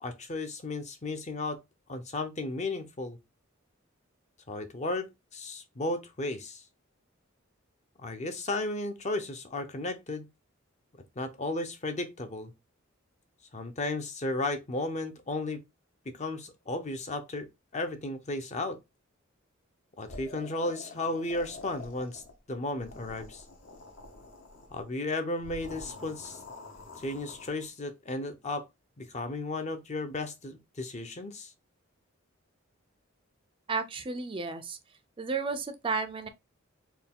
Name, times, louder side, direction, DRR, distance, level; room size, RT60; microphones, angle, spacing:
voice 1, 0.0-1.6 1.9-3.2 4.5-6.6 8.0-10.3 11.2-12.5 13.5-15.6 16.1-17.5 17.7-18.8 20.0-22.2 22.5-23.4 24.7-26.4 26.9-28.7 29.0-31.5, left 2 dB, 35° left, 0.6 m, -34 dB
sound 1, 20.1-22.4 22.7-24.8 25.4-27.7, left 3 dB, 60° left, 1.0 m, -47 dB
voice 2, 33.7-34.8 35.2-36.3, right 4 dB, 25° right, 0.4 m, -32 dB
4.4 x 2.3 x 3.5 m
head